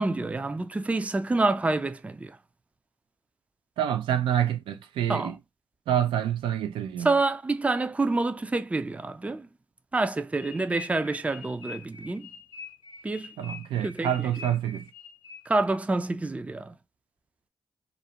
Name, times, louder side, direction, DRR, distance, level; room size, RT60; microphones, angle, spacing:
voice 1, 0.0-2.4 5.1-5.3 7.0-9.5 9.9-12.3 13.0-13.3 13.8-14.1 15.5-16.8, right 2 dB, 15° right, 0.3 m, -27 dB
voice 2, 3.8-5.4 5.9-7.2 13.4-14.9, right 10 dB, 90° right, 0.4 m, -27 dB
sound 1, 10.4-15.7, left 5 dB, 75° left, 0.6 m, -45 dB
2.5 x 2.1 x 2.7 m
cardioid pair, 55°, 9 cm